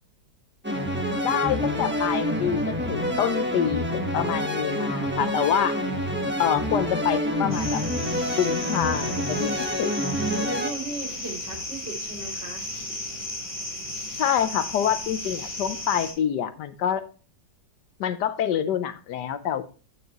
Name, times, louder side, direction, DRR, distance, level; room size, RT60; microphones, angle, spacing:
sound 1, 0.6-10.7, equal, 10° right, 0.9 m, -27 dB
voice 1, 1.2-5.7 6.4-7.8 8.4-9.5 9.8-9.9 14.2-17.0 18.0-19.6, left 9 dB, 75° left, 11 dB, 1.3 m, -26 dB
sound 2, 7.5-16.1, left 1 dB, 10° left, 3.2 m, -34 dB
voice 2, 10.1-12.6, right 3 dB, 35° right, -1 dB, 3.2 m, -34 dB
9.4 x 9.1 x 2.9 m, 0.36 s
omnidirectional pair, 1.9 m